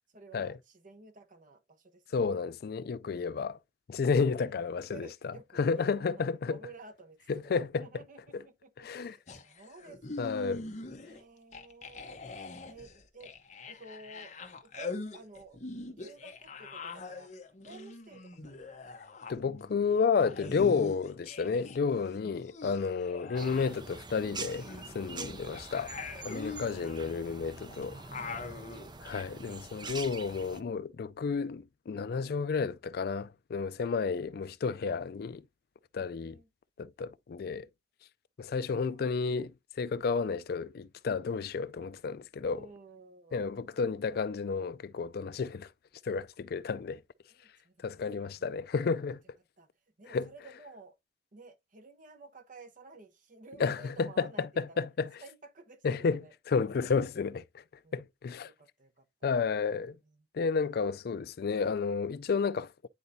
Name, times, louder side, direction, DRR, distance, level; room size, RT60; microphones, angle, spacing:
voice 1, 0.1-2.4 4.4-4.6 4.9-10.5 11.0-12.2 12.6-13.3 13.6-14.3 14.6-17.3 17.6-18.9 28.2-28.9 36.2-36.5 38.7-39.3 42.5-43.5 47.3-48.5 49.6-49.7 50.0-50.9 51.3-54.8 55.2-56.3 57.8-58.0 58.4-59.4 60.1-60.3, right 3 dB, 45° right, 1.0 m, -53 dB
voice 2, 2.1-3.6 3.9-5.1 5.6-6.6 7.3-7.9 8.3-8.4 8.8-9.2 10.2-10.6 19.3-24.7 24.9-25.9 26.2-28.0 29.0-35.4 35.9-36.4 36.8-37.7 38.4-42.7 43.3-45.7 46.0-47.0 47.8-49.2 50.1-50.3 53.6-55.1 55.8-56.2 56.5-57.6 57.9-58.5 59.2-60.0 60.3-62.9, left 5 dB, 55° left, 0.4 m, -31 dB
sound 1, 9.3-11.2 11.5-21.8 22.0-28.9, left 3 dB, 40° left, 1.0 m, -43 dB
sound 2, 23.4-30.6, right 4 dB, 25° right, 0.6 m, -45 dB
9.8 x 4.0 x 2.7 m
head